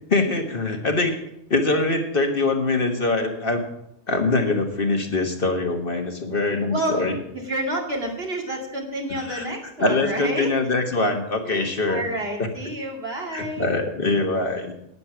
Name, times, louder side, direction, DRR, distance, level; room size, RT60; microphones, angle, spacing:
voice 1, 0.1-1.2 1.5-3.6 4.1-7.2 9.2-9.5 9.8-12.0 12.4-12.5 13.3-14.7, left 2 dB, 50° left, 4 dB, 1.6 m, -23 dB
voice 2, 6.7-10.5 11.4-13.7, right 1 dB, 55° right, 0 dB, 2.8 m, -29 dB
11.0 x 9.7 x 5.9 m, 0.78 s
omnidirectional pair, 1.2 m